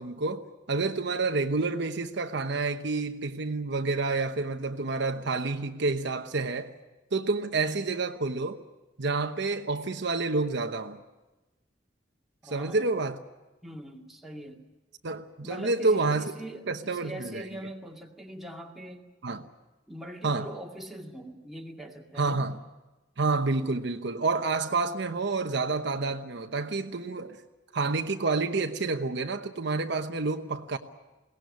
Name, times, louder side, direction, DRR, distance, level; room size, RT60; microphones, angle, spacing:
voice 1, 0.0-6.7 7.1-8.6 9.0-11.0 12.5-13.2 15.0-16.2 16.7-17.5 19.2-19.5 20.2-20.5 22.2-22.6 23.2-27.4 27.7-30.8, right 3 dB, 60° right, 1.0 m, -29 dB
voice 2, 12.4-12.8 13.6-14.6 15.4-19.1 19.9-22.6, right 1 dB, ahead, 2.2 m, -42 dB
22.0 x 18.0 x 9.5 m
head